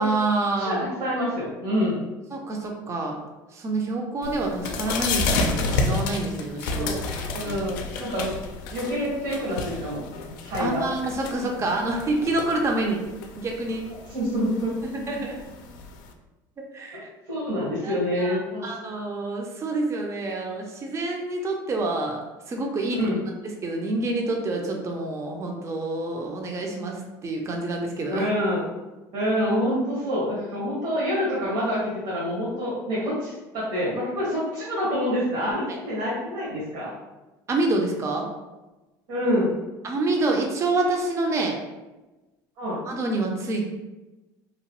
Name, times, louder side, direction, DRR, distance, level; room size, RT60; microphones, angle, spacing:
voice 1, 0.0-0.8 2.3-3.2 3.5-6.9 7.3-7.5 10.6-13.0 13.4-13.8 14.9-15.4 16.6-17.1 17.8-22.2 22.5-23.1 23.6-28.3 35.7-35.8 37.5-38.3 39.8-41.6 42.9-43.6, right 2 dB, 30° right, 1 dB, 0.5 m, -27 dB
voice 2, 0.6-2.0 6.7-8.3 8.7-10.0 10.3-10.8 14.1-14.7 17.3-18.7 22.9-23.2 28.1-28.6 29.1-37.0 39.1-39.6 42.6-42.8, equal, 70° right, -8 dB, 1.2 m, -27 dB
sound 1, 4.2-16.1, left 3 dB, 85° left, 0.4 m, -31 dB
2.9 x 2.2 x 2.9 m, 1.1 s
supercardioid pair, 105°, 10 cm